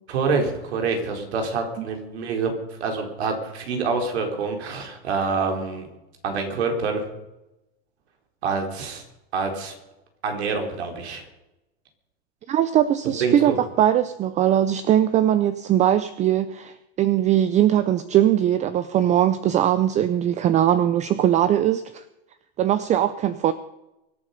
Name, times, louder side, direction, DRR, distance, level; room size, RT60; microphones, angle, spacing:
voice 1, 0.1-5.9 6.2-7.0 8.4-9.0 9.3-9.7 10.2-11.2 13.2-13.6, right 4 dB, 80° right, 4 dB, 4.2 m, -26 dB
voice 2, 12.5-22.0 22.6-23.5, right 11 dB, 20° right, 14 dB, 0.5 m, -20 dB
24.0 x 8.8 x 5.3 m, 0.94 s
supercardioid pair, 135°, 32 cm